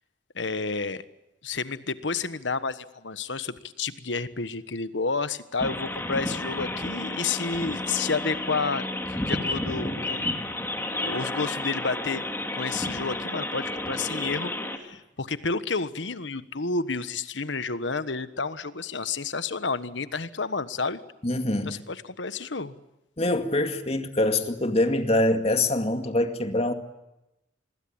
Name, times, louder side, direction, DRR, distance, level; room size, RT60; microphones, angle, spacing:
voice 1, 0.3-1.0 1.4-10.5 11.0-12.2 12.5-14.5 14.8-21.0 21.6-22.7, left 4 dB, 85° left, 1.3 m, -30 dB
sound 1, 5.6-14.8, left 1 dB, 10° left, 2.6 m, -31 dB
voice 2, 21.2-21.8 23.2-26.7, left 1 dB, 35° left, 2.2 m, -24 dB
26.5 x 22.0 x 8.8 m
head